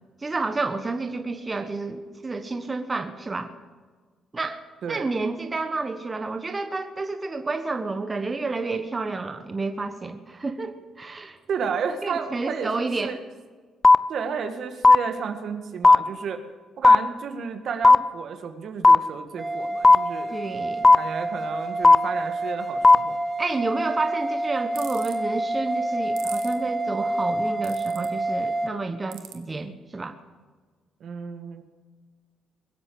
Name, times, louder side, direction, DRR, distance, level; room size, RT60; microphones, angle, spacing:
voice 1, 0.2-3.5 4.3-4.6 4.9-11.4 12.0-13.1 20.3-20.9 23.4-30.1, right 3 dB, 30° right, 7 dB, 1.3 m, -30 dB
voice 2, 11.5-13.2 14.1-16.4 16.8-20.4 20.9-23.2 31.0-31.6, right 6 dB, 65° right, 6 dB, 1.8 m, -32 dB
sound 1, 13.8-13.9 14.8-14.9 15.8-15.9 16.8-16.9 17.8-17.9 18.8-18.9 19.8-19.9 20.8-20.9 21.8-21.9 22.8-22.9, left 3 dB, 25° left, 0.6 m, -10 dB
sound 2, 19.4-28.7, right 2 dB, 10° right, 1.4 m, -28 dB
sound 3, 24.7-25.1 26.2-26.5 27.6-28.1 29.1-29.3, right 12 dB, 85° right, 1.4 m, -39 dB
22.0 x 8.0 x 7.8 m, 1.4 s
supercardioid pair, 60°, 0 cm